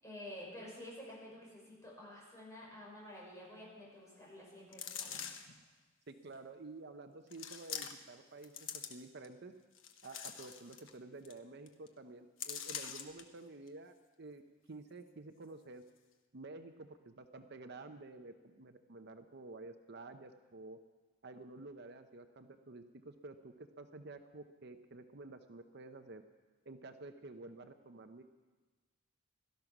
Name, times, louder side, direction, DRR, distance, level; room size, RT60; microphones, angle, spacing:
voice 1, 0.0-5.2, left 1 dB, 15° left, -4 dB, 5.9 m, -50 dB
sound 1, 4.7-5.6 6.3-6.4 7.3-8.2 8.4-9.3 9.7-10.9 11.3-11.4 11.7-11.9 12.4-13.2 13.7-13.8, left 8 dB, 75° left, 1.2 m, -44 dB
voice 2, 6.1-9.5 10.0-14.4 14.7-15.8 16.3-20.8 21.2-26.2 26.6-28.2, right 2 dB, 55° right, 7 dB, 0.8 m, -51 dB
17.0 x 13.0 x 6.1 m, 1.3 s
head